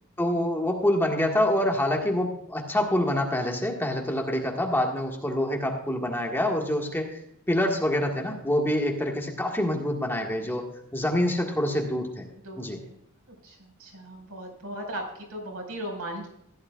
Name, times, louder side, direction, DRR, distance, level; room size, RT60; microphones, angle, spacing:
voice 1, 0.2-7.2 7.5-12.2 12.6-12.8, left 1 dB, 10° left, 1 dB, 1.6 m, -26 dB
voice 2, 12.4-13.0 13.3-16.3, right 1 dB, 85° right, 0 dB, 4.8 m, -37 dB
15.5 x 11.0 x 2.3 m, 0.76 s
head